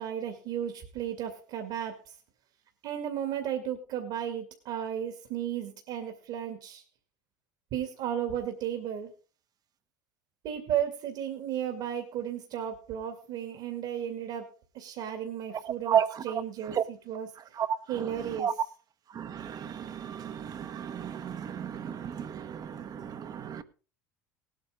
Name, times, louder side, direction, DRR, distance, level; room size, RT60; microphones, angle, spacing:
voice 1, 0.0-2.1 2.8-6.8 7.7-9.1 10.4-17.4 17.9-18.7, right 9 dB, 60° right, 2.2 m, -34 dB
voice 2, 19.1-23.6, right 8 dB, 40° right, 1.2 m, -32 dB
18.5 x 8.9 x 3.7 m
hypercardioid pair, 75°, 10 cm